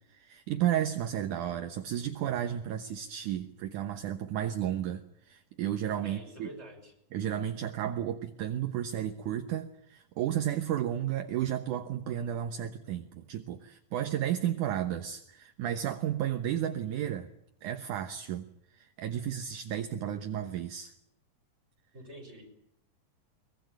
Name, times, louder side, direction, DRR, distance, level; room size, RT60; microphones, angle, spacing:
voice 1, 0.1-6.5 7.1-17.3 17.6-20.9, right 10 dB, 70° right, 8 dB, 2.4 m, -33 dB
voice 2, 6.0-6.9 21.9-22.5, right 1 dB, 15° right, 6 dB, 5.8 m, -47 dB
22.5 x 22.5 x 9.2 m, 0.75 s
omnidirectional pair, 4.0 m